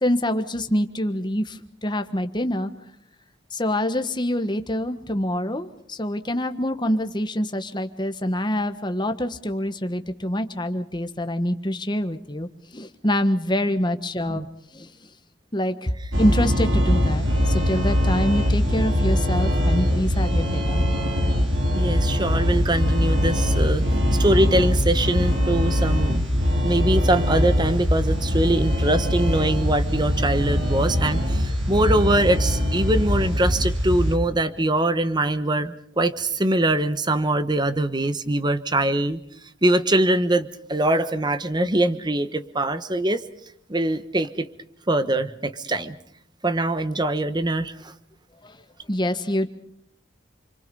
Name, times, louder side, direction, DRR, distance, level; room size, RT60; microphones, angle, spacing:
voice 1, 0.0-2.7 3.5-14.4 14.7-14.9 15.5-15.9 16.2-20.8 48.4-48.6 48.9-49.5, left 1 dB, 20° left, 8 dB, 1.4 m, -25 dB
sound 1, 16.1-34.2, equal, 70° right, 3.6 m, -22 dB
voice 2, 21.7-23.8 24.2-26.2 26.6-39.2 39.6-43.2 43.7-44.5 44.9-46.0 46.4-47.9, right 1 dB, 20° right, 11 dB, 1.1 m, -23 dB
29.0 x 23.5 x 5.5 m, 0.70 s
head